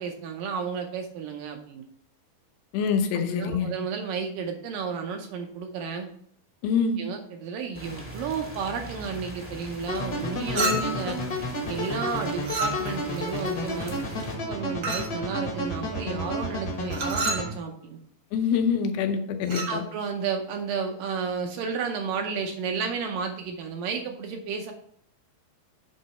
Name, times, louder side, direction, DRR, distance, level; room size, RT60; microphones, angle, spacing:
voice 1, 0.0-1.9 3.3-6.1 7.0-11.2 11.7-18.0 19.7-24.7, right 6 dB, 75° right, 4 dB, 2.1 m, -32 dB
voice 2, 2.7-3.7 6.6-7.0 10.5-10.8 18.3-19.8, left 6 dB, 85° left, 5 dB, 2.7 m, -25 dB
sound 1, 7.7-14.4, equal, 10° right, 0.7 m, -41 dB
sound 2, 9.9-17.5, left 1 dB, 55° left, 1.0 m, -32 dB
Chink clink, 10.6-11.1 12.5-13.1 14.8-15.2 16.9-17.5 19.4-19.8, right 2 dB, 55° right, 1.3 m, -29 dB
8.2 x 3.8 x 5.6 m, 0.65 s
omnidirectional pair, 4.4 m